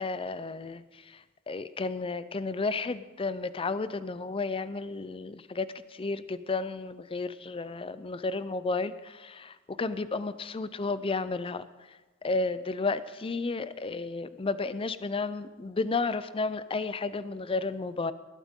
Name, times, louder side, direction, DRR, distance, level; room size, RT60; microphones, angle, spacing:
voice 1, 0.0-18.1, left 3 dB, 25° left, 14 dB, 0.5 m, -32 dB
19.5 x 12.0 x 3.7 m, 1.2 s
head